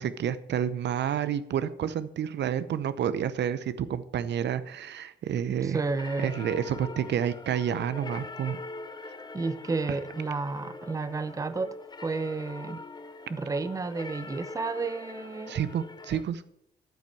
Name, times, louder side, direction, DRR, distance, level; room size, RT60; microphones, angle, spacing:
voice 1, 0.0-5.8 6.2-8.6 9.9-10.0 15.5-16.4, right 9 dB, 60° right, 14 dB, 0.7 m, -29 dB
voice 2, 5.6-6.3 9.3-11.7 12.0-12.8 13.3-15.6, right 3 dB, 15° right, 13 dB, 0.6 m, -31 dB
sound 1, 5.8-16.2, left 3 dB, 20° left, 0.7 m, -43 dB
9.0 x 5.9 x 7.6 m, 0.75 s
cardioid pair, 90°, 20 cm